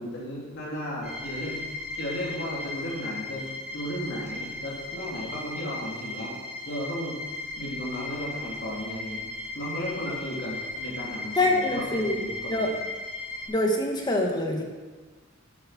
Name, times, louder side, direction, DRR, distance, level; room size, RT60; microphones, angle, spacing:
voice 1, 0.0-1.6 1.9-6.3 6.6-7.2 7.6-9.2 9.5-12.7, equal, 55° left, -5 dB, 3.3 m, -35 dB
sound 1, 1.0-13.5, left 2 dB, 5° right, 3.9 m, -37 dB
voice 2, 11.4-12.2 12.5-12.7 13.5-14.6, left 1 dB, 20° left, 1 dB, 1.6 m, -25 dB
12.5 x 7.5 x 6.0 m, 1.3 s
head